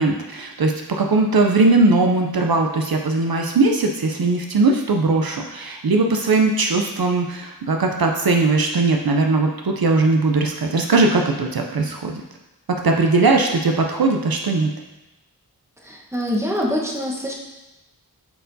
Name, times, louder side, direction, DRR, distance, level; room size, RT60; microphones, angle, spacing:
voice 1, 0.0-12.2 12.8-14.7, right 3 dB, 70° right, 2 dB, 0.6 m, -19 dB
voice 2, 15.8-17.3, equal, 5° right, -3 dB, 1.1 m, -24 dB
8.1 x 4.4 x 2.7 m, 1.0 s
wide cardioid pair, 45°, 38 cm